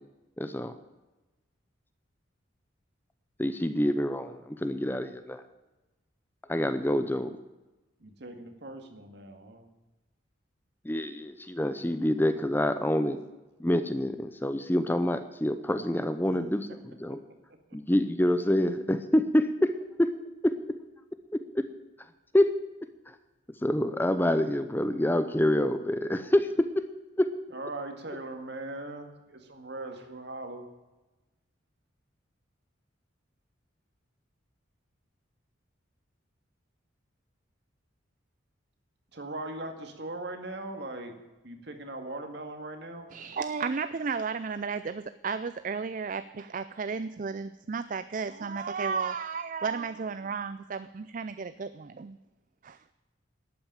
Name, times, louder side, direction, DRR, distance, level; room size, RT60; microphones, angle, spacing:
voice 1, 0.4-0.7 3.4-5.4 6.5-7.3 10.8-13.2 13.6-17.2 17.7-20.1 20.4-20.5 21.5-21.6 22.3-22.5 23.1-23.2 23.6-26.8 27.2-27.3, left 1 dB, 10° left, 10 dB, 0.6 m, -26 dB
voice 2, 8.0-9.7 16.2-16.4 16.7-16.8 27.5-30.7 39.1-41.2 41.4-43.1, right 2 dB, 60° right, 5 dB, 2.0 m, -40 dB
voice 3, 43.1-52.2 52.6-52.8, right 5 dB, 40° right, 13 dB, 0.4 m, -33 dB
12.0 x 8.9 x 8.9 m, 1.1 s
head